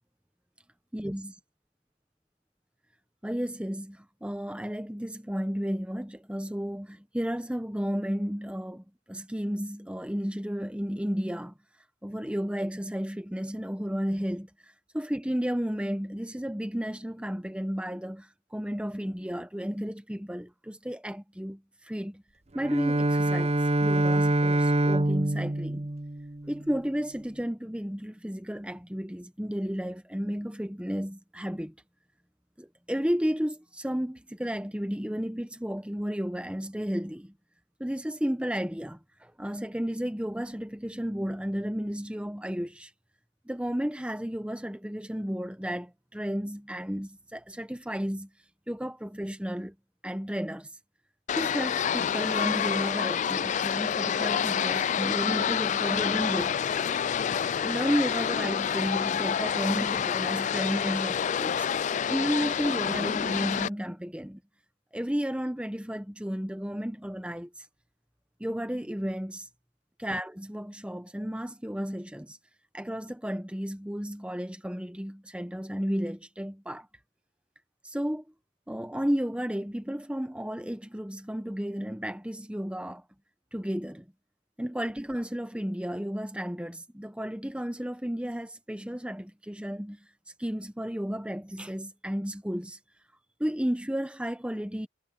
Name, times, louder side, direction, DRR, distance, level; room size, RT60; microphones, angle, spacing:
voice 1, 0.9-1.3 3.2-11.5 12.0-22.2 22.5-23.5 23.8-25.9 26.5-31.7 32.6-37.3 37.8-42.9 43.5-48.3 48.7-49.7 50.0-50.7 51.3-56.6 57.6-61.7 62.1-64.4 64.9-67.7 68.4-69.5 70.0-72.4 72.7-76.9 77.8-78.2 78.7-83.0 83.5-84.0 84.6-90.1 90.4-92.8 93.4-94.9, equal, 5° right, 0.9 m, -33 dB
Bowed string instrument, 22.6-26.7, right 1 dB, 35° right, 0.9 m, -25 dB
sound 1, 51.3-63.7, left 8 dB, 40° left, 0.3 m, -28 dB
head